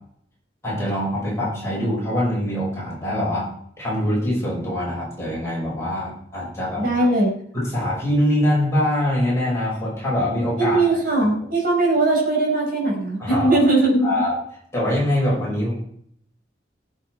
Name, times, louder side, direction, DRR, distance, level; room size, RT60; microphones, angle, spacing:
voice 1, 0.6-3.5 3.8-6.9 7.5-10.8 13.2-13.6 14.0-14.4 14.7-15.8, left 1 dB, 15° left, -5 dB, 5.8 m, -23 dB
voice 2, 6.8-7.3 10.6-14.1, right 2 dB, 50° right, -2 dB, 5.0 m, -19 dB
19.5 x 7.4 x 4.6 m, 0.66 s
head